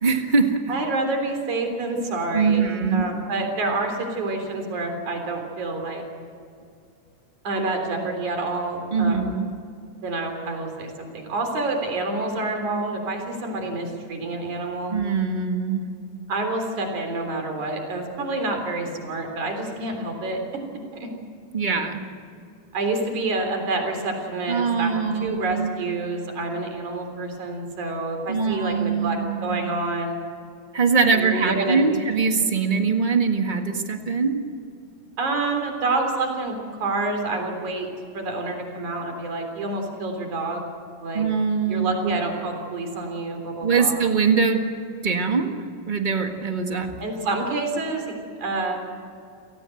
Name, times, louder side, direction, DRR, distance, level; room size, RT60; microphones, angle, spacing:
voice 1, 0.0-0.6 2.3-3.1 8.9-9.5 14.9-15.8 21.5-22.1 24.5-25.7 28.3-29.7 30.7-34.4 41.1-42.2 43.6-44.6 45.0-45.6 45.8-46.9, right 5 dB, 30° right, 5 dB, 0.9 m, -22 dB
voice 2, 0.7-6.0 7.4-9.2 10.0-14.9 16.3-20.4 21.0-21.1 22.7-30.2 31.1-32.1 35.2-37.9 38.1-40.7 41.0-41.2 41.7-44.0 47.0-48.8, right 2 dB, 70° right, 3 dB, 4.9 m, -28 dB
29.0 x 17.5 x 7.8 m, 2.4 s
omnidirectional pair, 3.5 m